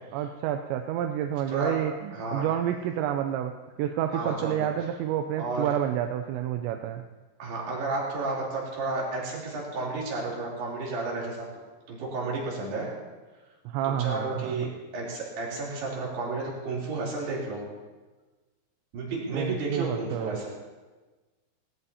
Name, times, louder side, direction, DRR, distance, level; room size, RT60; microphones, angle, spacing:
voice 1, 0.1-3.5 3.8-7.0 13.7-14.7 19.3-20.4, right 10 dB, 85° right, 6 dB, 2.9 m, -29 dB
voice 2, 2.1-2.5 4.1-4.7 5.4-5.7 7.4-11.4 11.9-12.9 13.8-17.6 18.9-20.5, right 3 dB, 65° right, -4 dB, 5.3 m, -32 dB
18.5 x 18.5 x 2.8 m, 1.3 s
omnidirectional pair, 5.2 m